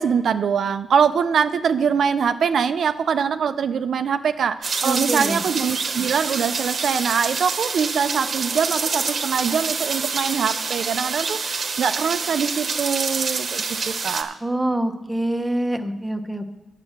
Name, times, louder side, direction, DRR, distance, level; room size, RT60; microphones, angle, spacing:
voice 1, 0.0-14.4, right 6 dB, 70° right, 10 dB, 0.4 m, -23 dB
sound 1, 4.6-14.2, right 4 dB, 50° right, 1.0 m, -27 dB
voice 2, 4.8-5.4 14.4-16.5, right 1 dB, 5° right, 4 dB, 0.9 m, -25 dB
9.4 x 7.4 x 6.5 m, 1.1 s
cardioid pair, 100°, 0 cm